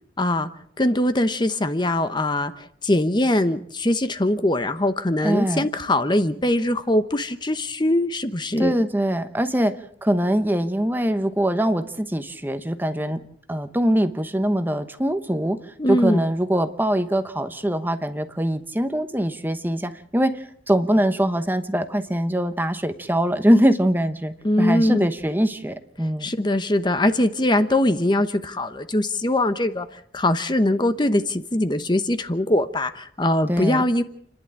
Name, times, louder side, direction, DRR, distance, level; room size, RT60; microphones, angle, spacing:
voice 1, 0.2-0.5 0.8-8.8 15.8-16.2 24.4-25.1 26.2-34.0, left 1 dB, 25° left, 10 dB, 1.0 m, -22 dB
voice 2, 5.2-5.7 8.6-9.7 10.0-13.2 13.5-26.3 33.5-33.8, equal, 10° right, 9 dB, 1.0 m, -23 dB
30.0 x 11.0 x 8.8 m, 0.66 s
head